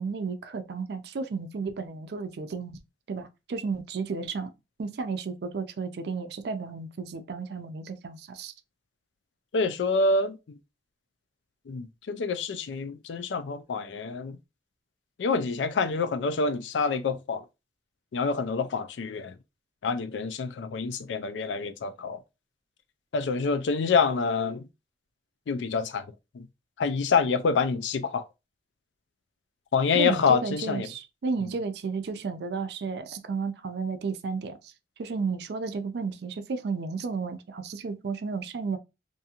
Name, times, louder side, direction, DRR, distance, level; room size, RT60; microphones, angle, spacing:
voice 1, 0.0-2.8 3.1-4.5 4.8-8.5 29.9-34.7 35.0-38.8, right 4 dB, 65° right, 0.4 m, -33 dB
voice 2, 9.5-10.4 11.7-14.4 15.2-17.4 18.1-19.3 19.8-22.2 23.1-24.7 25.5-26.0 26.3-26.5 26.8-28.2 29.7-30.9 31.4-31.5, left 4 dB, 90° left, 0.4 m, -27 dB
2.6 x 2.4 x 2.8 m
head